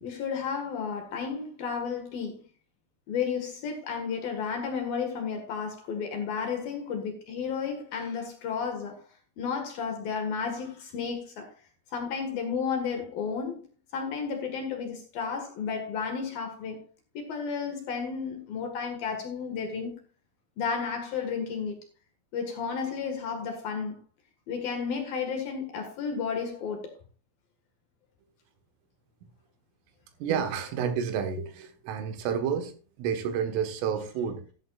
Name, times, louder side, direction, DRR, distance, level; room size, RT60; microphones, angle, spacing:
voice 1, 0.0-2.4 3.1-9.0 9.4-11.5 11.9-13.6 13.9-16.8 17.1-19.9 20.6-21.8 22.3-24.0 24.5-26.9 30.5-30.6 33.9-34.0, left 6 dB, 60° left, 2.9 m, -32 dB
voice 2, 30.2-32.7 33.0-34.4, right 7 dB, 80° right, 4.0 m, -30 dB
14.0 x 12.5 x 2.4 m
omnidirectional pair, 5.7 m